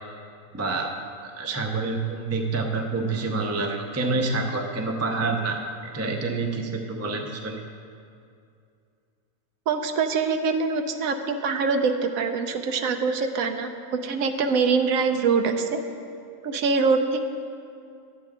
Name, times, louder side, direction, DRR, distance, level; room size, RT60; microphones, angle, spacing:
voice 1, 0.5-0.9 1.2-7.6, right 3 dB, 25° right, 3 dB, 0.3 m, -27 dB
voice 2, 9.7-15.8 16.4-17.2, right 4 dB, 80° right, 7 dB, 1.1 m, -24 dB
12.0 x 8.3 x 3.7 m, 2.4 s
omnidirectional pair, 1.5 m